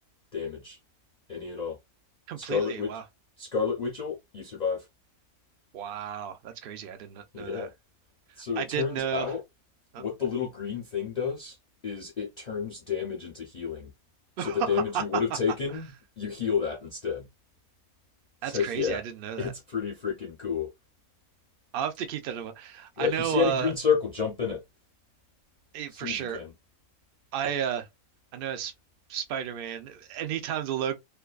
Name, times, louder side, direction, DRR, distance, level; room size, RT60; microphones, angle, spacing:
voice 1, 0.3-0.8 1.3-1.8 2.4-2.9 3.4-4.9 7.3-7.7 8.4-9.4 10.0-11.6 11.8-13.9 14.4-17.3 18.4-19.0 19.4-20.7 23.0-24.6 25.9-26.5, left 6 dB, 50° left, 0.5 m, -30 dB
voice 2, 2.3-3.0 5.7-7.7 8.6-9.3 9.9-10.0 14.4-15.0 18.4-19.5 21.7-23.7 25.7-26.4 27.3-27.9 28.3-28.7 29.1-31.0, right 9 dB, 80° right, 0.5 m, -32 dB
2.5 x 2.2 x 2.3 m
omnidirectional pair, 1.6 m